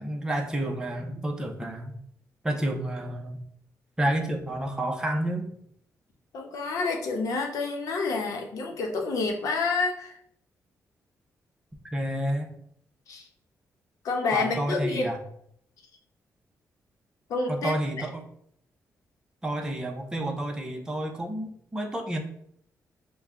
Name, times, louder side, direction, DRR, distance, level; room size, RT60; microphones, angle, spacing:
voice 1, 0.0-2.0 2.4-3.4 4.0-5.5 11.9-12.5 14.3-15.2 17.5-18.2 19.4-22.2, right 1 dB, 10° right, 2 dB, 0.7 m, -30 dB
voice 2, 6.3-10.2 13.1-13.3 14.0-15.1 17.3-17.7, left 3 dB, 80° left, 2 dB, 0.9 m, -28 dB
5.8 x 2.3 x 3.6 m, 0.68 s
cardioid pair, 110°, 6 cm